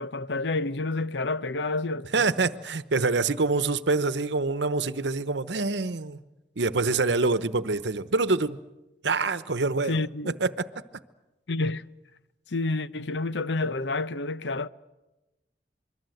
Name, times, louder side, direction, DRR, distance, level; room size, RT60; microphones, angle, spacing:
voice 1, 0.0-2.3 9.9-10.4 11.5-11.8 12.5-14.7, left 3 dB, 85° left, 0.8 m, -29 dB
voice 2, 2.1-6.2 6.6-8.6 9.0-10.0 10.4-10.7, right 3 dB, 85° right, 1.0 m, -25 dB
26.0 x 22.5 x 7.9 m
head